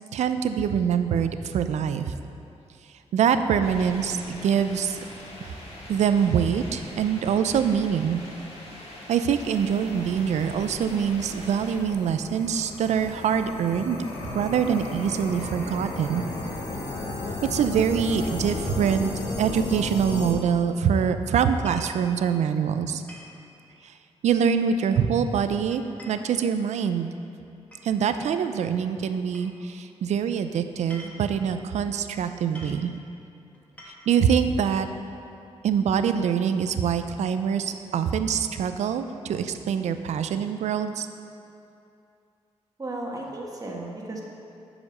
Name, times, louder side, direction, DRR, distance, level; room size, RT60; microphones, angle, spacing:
voice 1, 0.1-2.1 3.1-5.0 5.4-5.5 5.9-8.2 9.1-14.0 14.3-16.2 17.5-19.1 19.4-23.0 24.2-27.1 27.8-32.9 34.1-34.9 35.6-41.1, right 7 dB, 80° right, 9 dB, 0.5 m, -24 dB
sound 1, 3.6-11.8, left 1 dB, 65° left, 2.0 m, -42 dB
sound 2, 9.4-20.3, left 2 dB, 90° left, 1.2 m, -34 dB
sound 3, 21.6-22.0 23.1-23.4 24.8-25.2 25.7-26.9 27.7-28.4 29.3-29.5 30.7-31.4 32.2-32.3 32.5-32.9 33.5-34.2, equal, 10° left, 2.0 m, -47 dB
voice 2, 42.8-44.2, right 2 dB, 30° right, -2 dB, 1.6 m, -34 dB
8.5 x 5.1 x 6.5 m, 2.6 s
cardioid pair, 75°, 12 cm